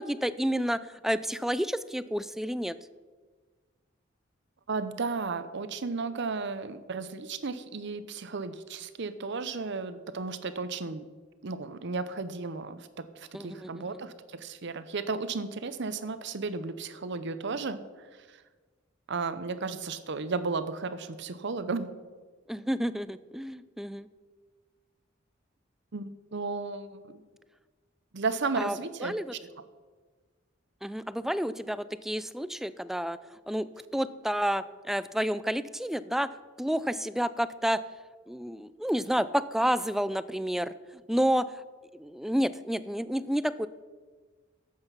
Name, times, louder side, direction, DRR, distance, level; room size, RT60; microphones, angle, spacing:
voice 1, 0.0-2.8 13.3-13.9 22.5-24.1 28.6-28.8 29.0-29.3 30.8-33.2 33.5-33.7 33.9-36.3 36.6-37.8 38.3-41.5 41.9-43.7, equal, ahead, 15 dB, 0.3 m, -30 dB
voice 2, 4.7-11.0 11.4-17.8 18.3-18.4 19.1-21.9 25.9-27.2 28.1-29.1, right 4 dB, 60° right, 12 dB, 0.7 m, -34 dB
12.0 x 7.9 x 5.7 m, 1.4 s
head